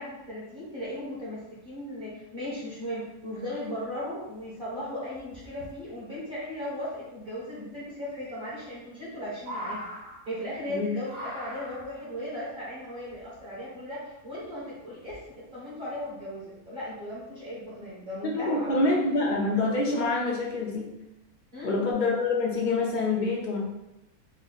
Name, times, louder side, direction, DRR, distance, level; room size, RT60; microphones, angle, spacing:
voice 1, 0.0-9.9 10.3-18.8 21.5-21.9, left 1 dB, 35° right, -8 dB, 1.4 m, -37 dB
sound 1, 4.1-4.2 4.4-4.8 5.1-5.7 7.3-7.4 7.6-7.7 8.2-8.3 8.6-10.7 11.1-12.2 13.1-13.7 14.4-14.5 15.0-15.4 15.8-16.0, equal, 65° right, 1.2 m, -41 dB
voice 2, 18.2-20.9 21.6-23.6, left 3 dB, 40° left, -2 dB, 0.7 m, -26 dB
4.3 x 2.2 x 4.0 m, 0.90 s
omnidirectional pair, 1.6 m